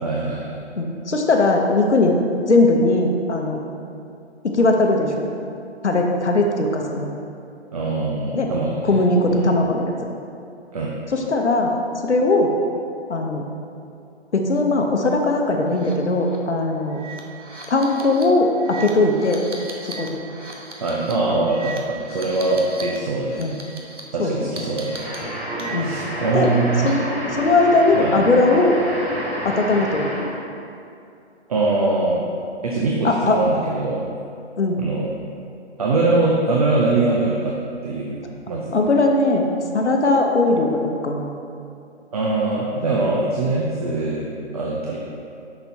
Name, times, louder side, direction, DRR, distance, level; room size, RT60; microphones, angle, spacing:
voice 1, 0.0-0.6 7.7-9.0 9.3-9.5 10.7-11.0 20.8-23.4 24.1-25.0 25.8-26.9 27.9-28.1 31.5-32.2 32.6-34.0 34.8-35.1 35.8-37.6 37.8-38.2 38.5-38.8 42.1-45.0, right 2 dB, 35° right, -3 dB, 0.6 m, -22 dB
voice 2, 0.8-2.2 2.5-3.6 4.4-5.3 5.8-7.1 8.3-8.5 8.8-9.9 11.1-11.7 12.0-12.5 13.1-13.4 14.3-17.0 17.7-19.4 20.0-20.2 23.4-23.6 24.2-24.5 25.7-26.0 26.3-26.5 26.8-28.8 29.4-30.3 33.0-33.4 34.6-34.8 38.7-39.4 39.7-41.4, left 2 dB, 80° left, 2 dB, 0.9 m, -19 dB
sound 1, 15.7-15.9 16.2-16.4 16.9-23.0 23.2-24.0 24.6-26.1 26.4-27.2, right 3 dB, 90° right, 1.2 m, -37 dB
sound 2, 24.9-30.4, right 1 dB, 15° right, 1.3 m, -29 dB
7.8 x 6.0 x 2.7 m, 2.6 s
figure-of-eight pair, 145°, 34 cm